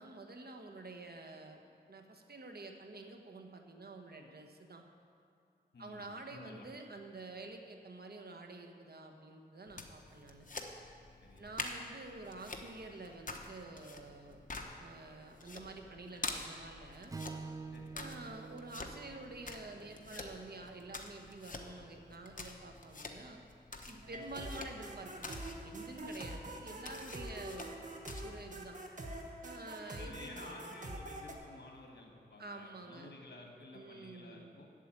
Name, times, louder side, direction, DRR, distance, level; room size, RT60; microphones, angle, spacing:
voice 1, 0.0-1.6 1.9-4.8 5.8-10.5 11.4-14.4 14.8-17.1 17.9-23.4 23.9-27.7 28.2-28.8 29.4-30.4 32.4-33.1 33.7-34.5, right 2 dB, 65° right, 4 dB, 1.2 m, -49 dB
voice 2, 5.7-6.7 11.2-11.8 17.7-18.1 24.1-24.3 29.9-34.6, left 2 dB, 70° left, 1 dB, 1.8 m, -53 dB
sound 1, 9.7-28.6, left 3 dB, 50° left, 1.0 m, -48 dB
Strum, 17.1-21.4, right 4 dB, 20° right, 0.3 m, -49 dB
sound 2, 24.0-31.3, right 1 dB, 45° right, 1.2 m, -45 dB
8.6 x 7.4 x 8.7 m, 2.5 s
wide cardioid pair, 65°, 18 cm